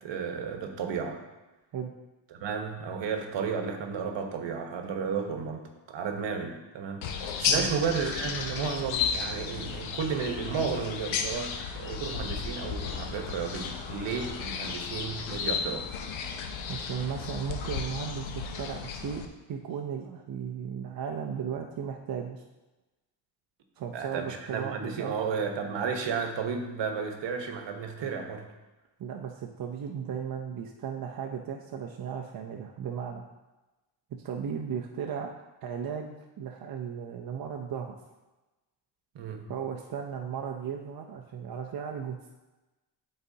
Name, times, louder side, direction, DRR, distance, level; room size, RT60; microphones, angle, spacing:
voice 1, 0.0-1.2 2.3-15.8 23.9-28.4 39.1-39.5, right 6 dB, 70° right, 4 dB, 1.1 m, -33 dB
sound 1, 7.0-19.3, left 6 dB, 85° left, 0.8 m, -33 dB
voice 2, 16.7-19.2 19.5-22.4 23.8-25.1 29.0-33.3 34.1-35.3 35.6-38.0 39.5-42.2, right 7 dB, 50° right, 2 dB, 0.6 m, -36 dB
12.0 x 4.1 x 2.7 m, 1.1 s
cardioid pair, 105°, 46 cm